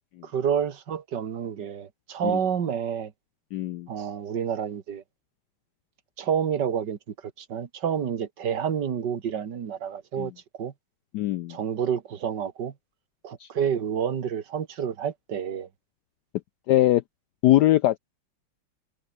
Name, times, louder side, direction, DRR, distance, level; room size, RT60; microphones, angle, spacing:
voice 1, 0.2-3.1 3.9-5.0 6.2-7.0 7.4-10.3 10.6-10.7 11.5-12.7 13.2-15.7, right 8 dB, 55° right, 2.1 m, -29 dB
voice 2, 3.5-3.9 10.2-10.3 11.1-11.6 13.4-13.5 16.7-17.0 17.4-18.0, left 14 dB, 85° left, 0.9 m, -21 dB
omnidirectional pair, 2.4 m